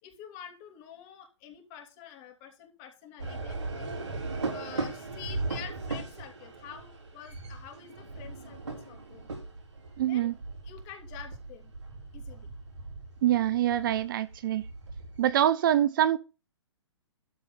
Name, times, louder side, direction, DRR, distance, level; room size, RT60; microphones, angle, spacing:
voice 1, 0.0-4.1 4.5-9.3 10.1-10.3 10.6-11.7 12.1-12.5, left 9 dB, 30° left, 2.8 m, -47 dB
sound 1, 3.2-15.3, right 3 dB, 75° right, 4.6 m, -38 dB
voice 2, 10.0-10.3 13.2-14.6 15.2-16.2, right 11 dB, 45° right, 0.7 m, -25 dB
13.0 x 4.3 x 6.7 m
figure-of-eight pair, 120°, 15 cm